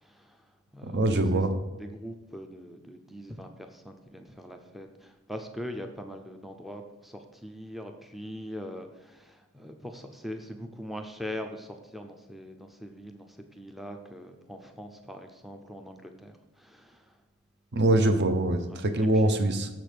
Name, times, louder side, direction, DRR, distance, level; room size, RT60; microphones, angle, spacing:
voice 1, 0.0-0.4 0.7-1.0 1.3-1.5 1.8-17.1 18.7-19.4, equal, ahead, 4 dB, 0.5 m, -42 dB
voice 2, 0.8-1.5 17.7-19.7, right 1 dB, 50° right, 8 dB, 0.7 m, -24 dB
7.3 x 6.0 x 5.1 m, 1.1 s
head